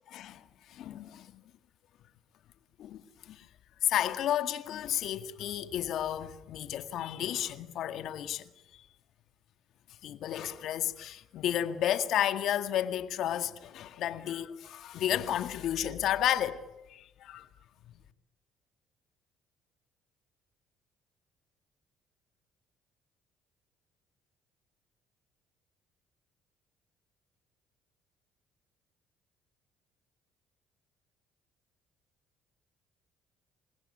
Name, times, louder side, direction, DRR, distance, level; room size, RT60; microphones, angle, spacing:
voice 1, 0.1-1.4 2.8-3.5 3.8-8.9 10.0-17.5, left 11 dB, 70° left, 2.0 m, -32 dB
29.0 x 17.0 x 9.8 m
supercardioid pair, 75°, 0 cm